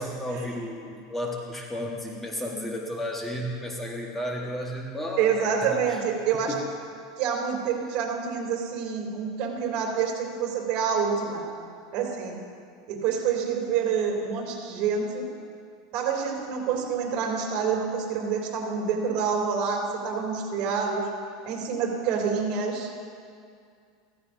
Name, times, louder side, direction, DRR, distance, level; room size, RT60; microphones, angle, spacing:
voice 1, 0.0-6.0 6.5-6.6, left 1 dB, 10° left, -1 dB, 1.3 m, -33 dB
voice 2, 5.2-6.5 7.2-11.4 11.9-12.4 12.9-15.3 15.9-21.0 21.4-22.9, right 6 dB, 50° right, 0 dB, 2.8 m, -27 dB
15.0 x 15.0 x 2.6 m, 2.2 s
supercardioid pair, 120°, 2 cm